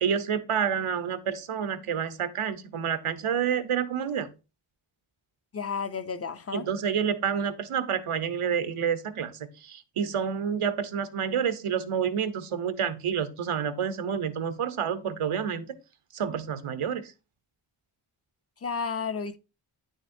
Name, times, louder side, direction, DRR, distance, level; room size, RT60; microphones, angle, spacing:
voice 1, 0.0-4.3 6.5-15.7 16.1-17.1, right 7 dB, 80° right, 0.9 m, -29 dB
voice 2, 5.5-6.7 18.6-19.4, left 5 dB, 30° left, 0.5 m, -32 dB
9.4 x 6.3 x 2.6 m
wide cardioid pair, 95°, 50 cm